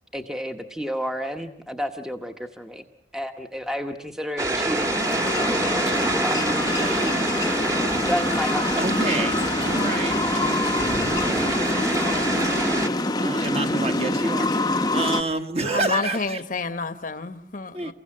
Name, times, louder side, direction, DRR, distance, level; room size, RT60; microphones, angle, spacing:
voice 1, 0.1-2.8 3.1-7.0 8.0-8.8, equal, 5° right, 5 dB, 1.0 m, -32 dB
sound 1, 4.4-12.9, right 2 dB, 20° right, 1.4 m, -26 dB
sound 2, 4.5-15.2, left 2 dB, 20° left, 0.8 m, -25 dB
voice 2, 6.7-7.2 8.8-12.6 13.2-16.4 17.7-17.9, right 2 dB, 35° right, 6 dB, 1.6 m, -30 dB
voice 3, 15.7-17.9, left 4 dB, 45° left, 11 dB, 1.0 m, -29 dB
29.0 x 16.0 x 7.6 m, 0.75 s
head